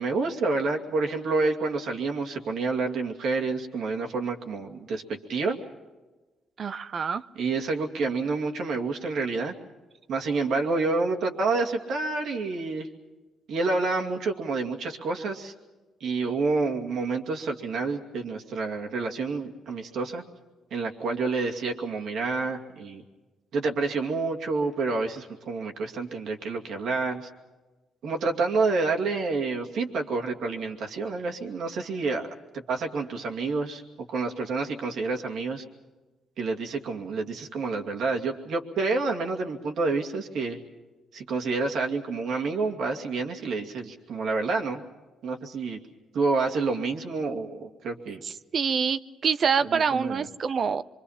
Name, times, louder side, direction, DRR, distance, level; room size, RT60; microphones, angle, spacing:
voice 1, 0.0-5.6 7.4-9.5 10.1-12.9 13.5-15.5 16.0-20.2 20.7-23.0 23.5-27.3 28.0-33.8 34.1-35.6 36.4-40.6 41.1-44.8 45.2-45.8 46.1-48.2 49.7-50.3, right 3 dB, 70° right, 1 dB, 2.5 m, -28 dB
voice 2, 6.6-7.2 48.2-50.8, right 6 dB, 50° right, 14 dB, 0.7 m, -26 dB
25.0 x 24.5 x 5.8 m, 1.2 s
cardioid pair, 90°, 0 cm